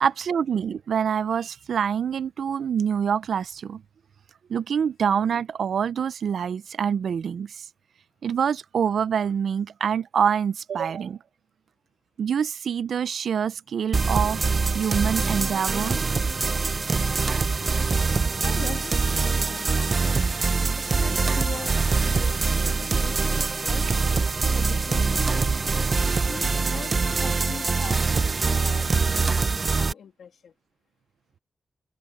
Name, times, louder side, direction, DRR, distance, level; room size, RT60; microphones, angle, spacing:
voice 1, 0.0-3.8 4.5-7.7 8.2-11.2 12.2-14.5 14.7-16.0, right 7 dB, 75° right, 0.5 m, -26 dB
sound 1, 13.9-29.9, right 4 dB, 40° right, 0.8 m, -24 dB
voice 2, 18.4-20.2 20.8-23.9 24.5-25.5 26.3-30.5, left 7 dB, 85° left, 2.6 m, -41 dB
wide cardioid pair, 115°, 0 cm